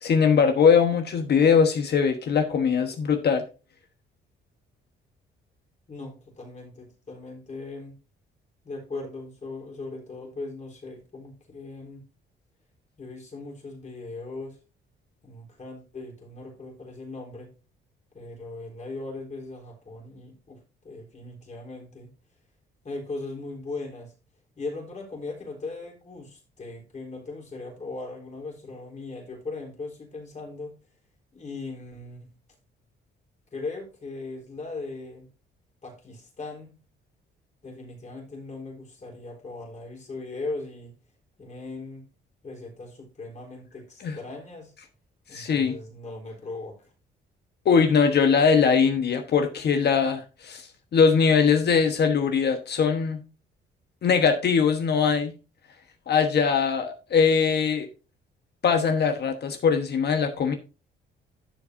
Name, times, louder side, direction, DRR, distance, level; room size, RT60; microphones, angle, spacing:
voice 1, 0.0-3.4 44.0-44.2 45.3-45.8 47.6-50.7 50.9-53.2 54.0-55.3 56.1-57.9 58.6-60.5, left 6 dB, 55° left, 1.2 m, -21 dB
voice 2, 5.9-8.0 8.6-12.0 13.0-14.6 15.2-17.5 18.1-20.6 20.8-22.1 22.8-24.1 24.6-30.7 31.3-32.3 33.5-35.3 35.8-36.7 37.6-40.9 41.4-42.0 42.4-44.7 45.3-46.7, left 3 dB, 35° left, 3.7 m, -38 dB
11.5 x 7.3 x 2.6 m
cardioid pair, 90°, 20 cm